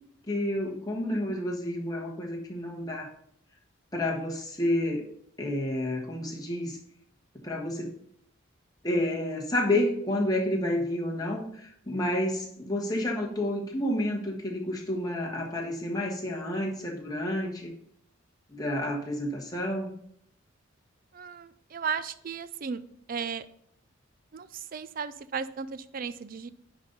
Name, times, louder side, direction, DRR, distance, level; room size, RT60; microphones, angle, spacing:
voice 1, 0.3-3.1 3.9-5.0 5.4-6.8 7.4-7.9 8.8-17.7 18.5-20.0, left 1 dB, 20° left, -1 dB, 1.4 m, -30 dB
voice 2, 21.1-22.8 23.1-23.4 24.3-26.5, right 6 dB, 45° right, 14 dB, 0.4 m, -35 dB
9.8 x 4.0 x 5.2 m, 0.69 s
head